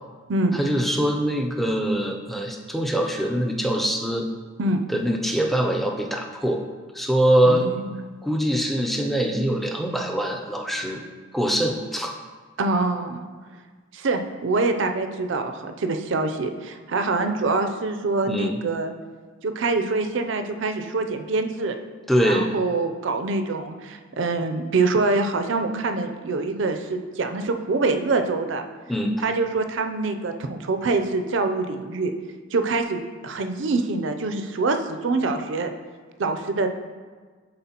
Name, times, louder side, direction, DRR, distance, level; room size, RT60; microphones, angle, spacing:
voice 1, 0.5-4.3 4.9-6.6 6.9-7.7 8.2-11.0 11.3-12.1 18.3-18.6 22.1-22.5 28.9-29.2, equal, ahead, 1 dB, 0.4 m, -23 dB
voice 2, 7.4-7.9 12.6-13.2 13.9-18.9 19.4-21.8 22.2-28.6 29.2-32.1 32.5-35.7 36.2-36.7, right 3 dB, 65° right, 7 dB, 0.5 m, -25 dB
10.5 x 3.8 x 2.9 m, 1.5 s
head